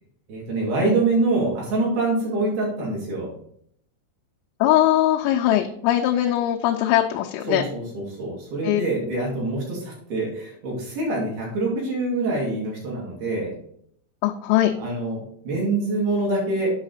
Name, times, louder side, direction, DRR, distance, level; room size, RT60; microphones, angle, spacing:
voice 1, 0.3-3.3 7.5-13.5 14.8-16.7, right 2 dB, 55° right, -4 dB, 3.7 m, -25 dB
voice 2, 4.6-7.6 8.6-8.8 14.2-14.7, left 13 dB, 90° left, 1 dB, 3.3 m, -20 dB
8.7 x 5.7 x 4.1 m, 0.67 s
omnidirectional pair, 5.8 m